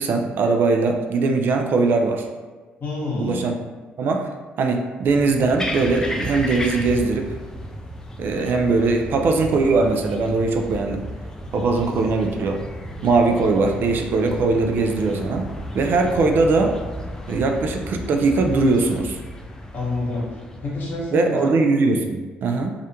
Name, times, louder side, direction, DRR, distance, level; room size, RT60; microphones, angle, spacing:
voice 1, 0.0-2.3 3.2-3.5 4.0-4.3 4.6-7.3 8.2-11.0 11.5-12.6 13.0-15.5 15.7-16.8 17.3-19.2 21.1-22.7, right 3 dB, 60° right, 3 dB, 0.3 m, -20 dB
voice 2, 2.8-3.5 19.7-21.6, left 2 dB, 55° left, -5 dB, 1.0 m, -28 dB
sound 1, 5.1-21.1, equal, 15° left, 0.4 m, -34 dB
2.4 x 2.1 x 2.8 m, 1.4 s
supercardioid pair, 70°, 4 cm